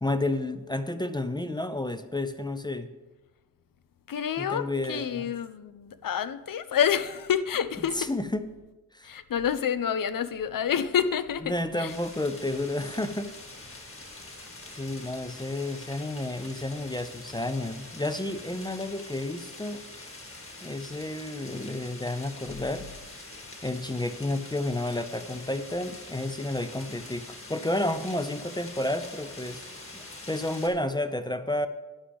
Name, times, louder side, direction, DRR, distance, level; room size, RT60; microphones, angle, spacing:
voice 1, 0.0-2.9 4.4-5.3 8.0-8.4 8.9-9.2 11.5-13.3 14.7-19.8 20.6-22.9 23.6-29.6 29.9-31.7, left 1 dB, 15° left, 10 dB, 0.4 m, -31 dB
voice 2, 4.1-8.1 9.0-11.9, left 8 dB, 75° left, 13 dB, 0.6 m, -28 dB
sound 1, 11.9-30.7, left 2 dB, 40° left, 2.1 m, -45 dB
12.5 x 10.0 x 3.5 m, 1.1 s
wide cardioid pair, 145°, 34 cm